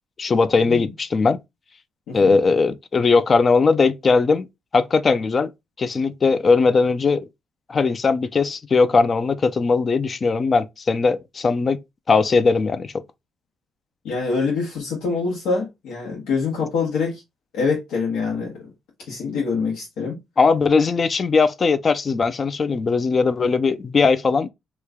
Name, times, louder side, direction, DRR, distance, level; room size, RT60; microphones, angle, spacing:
voice 1, 0.2-1.4 2.1-4.5 4.7-5.5 5.8-7.3 7.7-11.8 12.1-12.9 20.4-24.5, left 4 dB, 40° left, 0.4 m, -19 dB
voice 2, 14.0-17.2 17.5-18.6 19.1-20.2, left 4 dB, 85° left, 1.0 m, -25 dB
3.1 x 2.3 x 3.5 m
cardioid pair, 90°, 0 cm